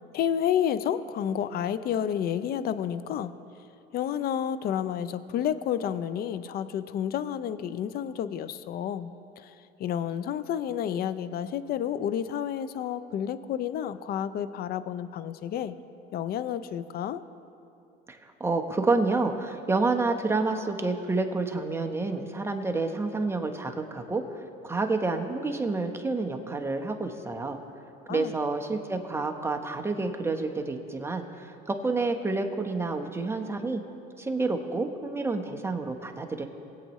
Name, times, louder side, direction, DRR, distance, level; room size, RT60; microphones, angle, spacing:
voice 1, 0.1-3.3 3.9-9.1 9.4-9.5 9.8-15.8 16.1-17.2 28.1-28.3, left 9 dB, 50° left, 14 dB, 0.6 m, -30 dB
voice 2, 18.1-27.6 28.1-33.8 34.2-36.4, right 3 dB, 10° right, 4 dB, 1.1 m, -29 dB
22.0 x 8.3 x 3.1 m, 2.8 s
supercardioid pair, 105°, 20 cm